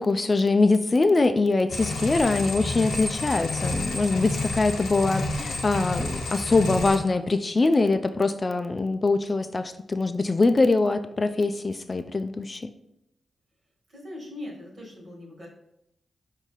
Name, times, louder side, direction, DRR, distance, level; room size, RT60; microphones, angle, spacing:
voice 1, 0.0-12.7, left 3 dB, 35° left, 9 dB, 0.3 m, -23 dB
sound 1, 1.7-7.0, left 2 dB, 85° left, 0.6 m, -30 dB
voice 2, 13.9-15.5, left 1 dB, 55° right, -1 dB, 1.6 m, -40 dB
4.7 x 2.7 x 3.9 m, 0.79 s
cardioid pair, 60°, 0 cm